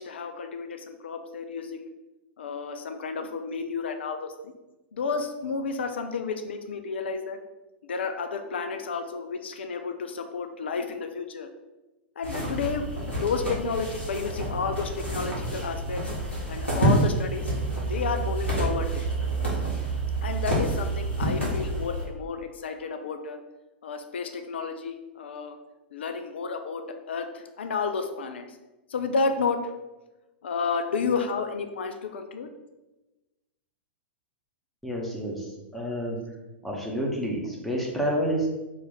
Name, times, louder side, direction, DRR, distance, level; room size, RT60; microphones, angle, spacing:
voice 1, 0.0-1.9 2.4-4.5 4.9-7.4 7.9-11.5 12.2-16.0 16.5-17.5 17.9-19.1 20.2-23.4 23.8-25.6 25.9-26.8 27.1-28.5 28.9-29.7 30.4-32.5, left 5 dB, 70° left, 7 dB, 0.3 m, -31 dB
sound 1, 12.2-22.0, right 2 dB, 90° left, 1.4 m, -28 dB
voice 2, 34.8-36.2 36.6-38.5, equal, ahead, -3 dB, 0.8 m, -29 dB
3.1 x 2.5 x 3.8 m, 1.1 s
figure-of-eight pair, 100°, 6 cm